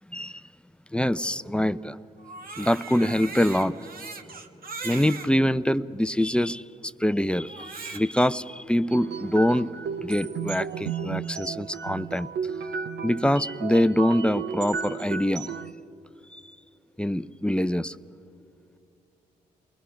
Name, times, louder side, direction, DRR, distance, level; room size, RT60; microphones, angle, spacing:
voice 1, 0.1-0.4 0.9-2.0 2.5-3.8 4.8-9.7 10.0-12.3 13.0-15.5 16.3-16.5 17.0-18.0, left 1 dB, 5° left, 14 dB, 0.6 m, -24 dB
Crying sobbing, 2.2-5.3 6.0-6.1 7.5-8.3, right 4 dB, 55° right, 1.5 m, -39 dB
sound 1, 8.9-15.7, right 7 dB, 70° right, 0.7 m, -33 dB
28.5 x 20.5 x 5.8 m, 2.7 s
supercardioid pair, 45°, 18 cm